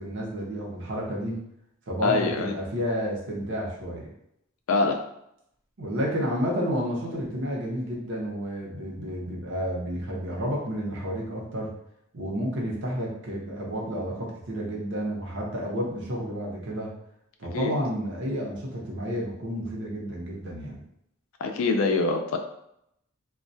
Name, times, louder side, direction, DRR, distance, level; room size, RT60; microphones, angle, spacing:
voice 1, 0.0-1.4 1.9-4.1 5.8-11.7 12.1-16.9 17.4-20.8, equal, 60° right, -3 dB, 0.7 m, -31 dB
voice 2, 2.0-2.5 4.7-5.0 17.5-17.7 21.4-22.4, left 3 dB, 70° left, 5 dB, 0.4 m, -24 dB
2.2 x 2.2 x 2.6 m, 0.77 s
head